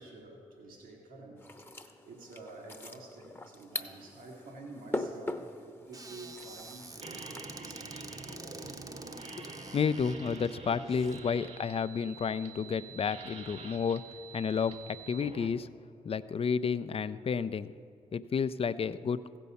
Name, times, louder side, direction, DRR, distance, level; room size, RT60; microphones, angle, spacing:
voice 1, 0.0-1.4 1.8-8.8 10.5-10.7 11.0-11.6, right 2 dB, 80° right, 0 dB, 1.5 m, -50 dB
sound 1, 1.4-7.4, left 1 dB, 15° left, 0.9 m, -41 dB
Squeak / Cupboard open or close, 5.9-11.2, right 2 dB, 25° right, 0.8 m, -48 dB
sound 2, 6.0-15.5, right 4 dB, 50° right, 1.0 m, -47 dB
voice 2, 9.7-14.0 14.3-15.7 16.0-17.7 18.1-19.2, left 6 dB, 40° left, 14 dB, 0.4 m, -31 dB
15.0 x 5.3 x 6.9 m, 2.3 s
supercardioid pair, 45°, 14 cm